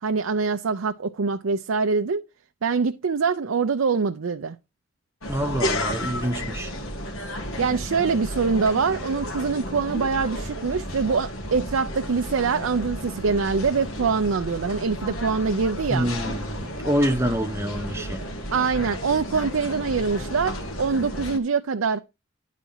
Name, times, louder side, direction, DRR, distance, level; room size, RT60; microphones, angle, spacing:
voice 1, 0.0-2.2 2.6-4.6 7.6-16.1 18.5-22.0, right 5 dB, 75° right, 0.6 m, -24 dB
sound 1, 5.2-21.4, equal, 85° left, 1.8 m, -32 dB
voice 2, 5.3-6.7 15.9-18.3, equal, 10° right, 1.0 m, -26 dB
10.5 x 4.1 x 5.6 m
head